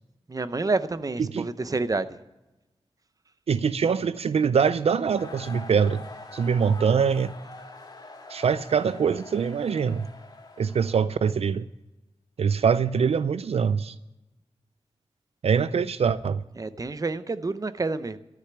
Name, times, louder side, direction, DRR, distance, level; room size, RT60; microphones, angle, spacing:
voice 1, 0.3-2.1 16.6-18.2, right 3 dB, 35° right, 0.7 m, -28 dB
voice 2, 3.5-6.0 6.3-7.3 8.3-10.1 10.6-11.7 12.4-13.9 15.4-16.4, right 6 dB, 80° right, 0.4 m, -23 dB
sound 1, 5.2-11.0, left 2 dB, 40° left, 2.1 m, -44 dB
13.0 x 6.7 x 9.7 m
wide cardioid pair, 105°, 10 cm